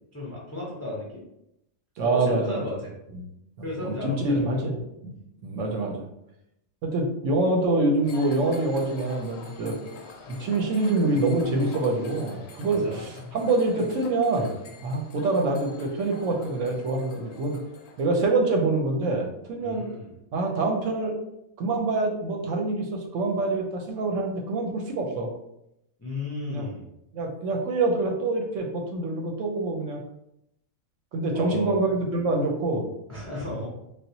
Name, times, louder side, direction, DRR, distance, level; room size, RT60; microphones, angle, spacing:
voice 1, 0.1-1.2 2.0-2.9 3.6-4.6 12.7-13.0 19.6-20.1 26.0-26.8 31.3-31.8 33.1-33.7, left 1 dB, 25° left, -4 dB, 0.3 m, -34 dB
voice 2, 2.0-2.6 3.1-3.3 3.8-5.2 5.4-6.0 6.8-9.8 10.4-14.5 14.8-17.6 18.0-19.8 20.3-21.1 21.6-25.3 26.5-26.7 27.1-30.0 31.1-32.8, right 2 dB, 70° right, 1 dB, 0.9 m, -25 dB
sound 1, 8.0-18.3, left 3 dB, 65° left, 0.7 m, -44 dB
3.4 x 2.3 x 2.7 m, 0.81 s
omnidirectional pair, 1.5 m